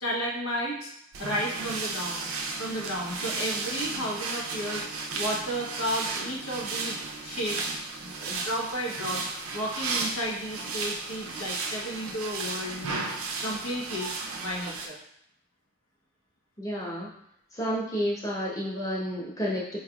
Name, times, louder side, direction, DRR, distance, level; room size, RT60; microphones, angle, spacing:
voice 1, 0.0-0.9 1.2-2.3 2.6-4.9 5.1-7.7 8.0-9.2 9.5-13.1 13.4-14.1 14.4-15.0, equal, 80° left, -1 dB, 0.9 m, -33 dB
sound 1, 1.1-14.9, right 4 dB, 75° right, 0.5 m, -34 dB
voice 2, 16.6-17.1 17.5-19.8, equal, 15° left, -5 dB, 0.8 m, -30 dB
4.7 x 3.3 x 2.3 m, 0.74 s
head